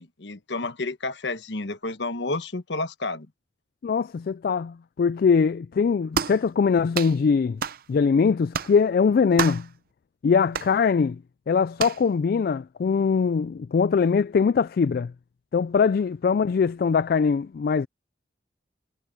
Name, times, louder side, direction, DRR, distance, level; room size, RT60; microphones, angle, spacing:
voice 1, 0.0-3.3, left 2 dB, 80° left, 1.3 m, -30 dB
voice 2, 3.8-7.6 7.9-9.7 10.2-11.2 11.5-15.1 15.5-17.9, left 5 dB, 55° left, 0.3 m, -22 dB
sound 1, 6.1-6.4 6.9-7.2 7.6-7.8 8.5-8.8 9.4-9.7 10.5-10.7 11.8-12.0, right 6 dB, 55° right, 0.6 m, -28 dB
head